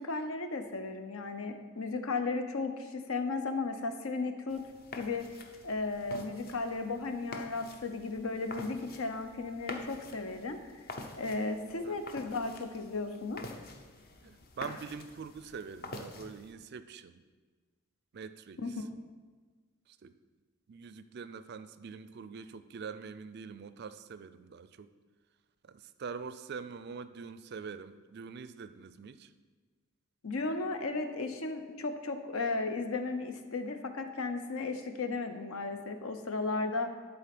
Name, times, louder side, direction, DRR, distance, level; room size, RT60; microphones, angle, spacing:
voice 1, 0.0-4.6 5.0-5.2 5.6-10.6 11.2-13.4 18.6-18.9 30.2-36.9, left 3 dB, 75° left, 7 dB, 0.8 m, -35 dB
sound 1, 4.5-16.5, left 2 dB, 45° left, 0.8 m, -47 dB
voice 2, 14.2-17.2 18.1-18.6 19.9-20.1 20.7-24.9 25.6-29.3, right 5 dB, 50° right, 12 dB, 0.4 m, -44 dB
11.5 x 4.1 x 5.9 m, 1.4 s
head